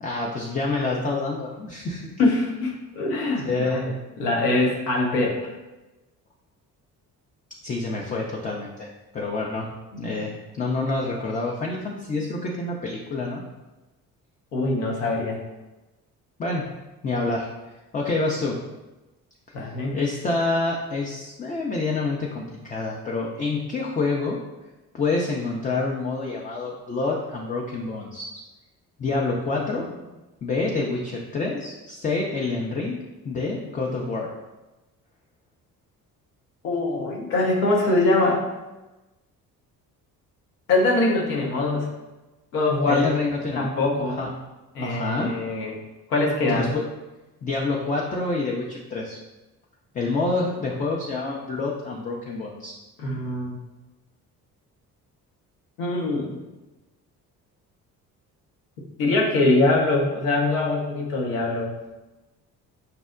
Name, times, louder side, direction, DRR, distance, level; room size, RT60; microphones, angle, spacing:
voice 1, 0.0-2.1 3.4-3.8 7.6-8.9 9.1-9.7 10.0-13.4 16.4-16.7 17.0-17.5 17.9-18.6 19.9-24.4 24.9-28.2 29.0-29.8 30.4-33.0 33.2-34.3 42.9-43.7 44.2-44.3 44.8-45.3 46.5-46.8 47.4-49.2 49.9-52.7, left 3 dB, 20° left, -2 dB, 0.3 m, -27 dB
voice 2, 2.2-3.8 4.2-5.5 9.9-10.1 14.5-15.4 19.5-20.0 29.5-29.9 36.6-38.4 40.7-42.0 42.5-43.1 43.6-44.2 44.7-45.8 46.1-46.7 53.0-53.6 55.8-56.4 59.0-61.7, left 2 dB, 80° left, -1 dB, 0.8 m, -23 dB
5.4 x 2.0 x 2.4 m, 1.1 s
figure-of-eight pair, 45°, 47 cm